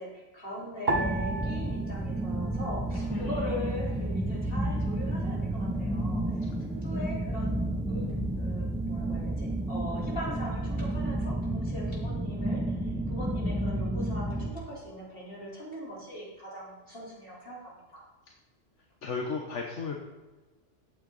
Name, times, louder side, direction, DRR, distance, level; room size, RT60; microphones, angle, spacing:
voice 1, 0.0-6.2 6.6-7.5 7.9-18.0, left 1 dB, 50° left, -6 dB, 4.3 m, -40 dB
sound 1, 0.9-14.5, right 1 dB, 5° right, 0.9 m, -31 dB
sound 2, 0.9-3.4 3.7-4.6 5.2-5.6, right 2 dB, 55° right, 1.4 m, -35 dB
voice 2, 19.0-19.9, left 4 dB, 75° left, 1 dB, 1.5 m, -34 dB
14.0 x 9.0 x 4.1 m, 1.2 s
omnidirectional pair, 1.3 m